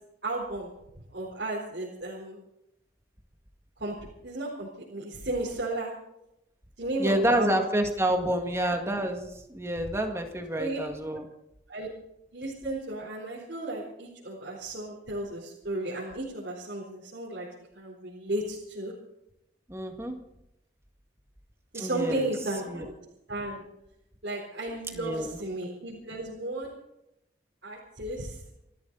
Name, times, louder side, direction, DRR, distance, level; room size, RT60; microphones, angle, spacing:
voice 1, 0.2-0.7 1.1-2.4 3.8-3.9 4.2-5.9 6.8-7.6 10.6-10.8 11.7-11.9 12.3-17.5 17.7-18.9 21.7-22.9 23.3-23.6 24.2-26.8 27.6-28.4, right 2 dB, 65° right, -4 dB, 4.1 m, -34 dB
voice 2, 7.0-11.3 19.7-20.2 21.7-22.3 22.7-22.9 24.9-25.4, right 1 dB, 15° right, 4 dB, 2.0 m, -28 dB
29.0 x 12.0 x 4.1 m, 0.84 s
head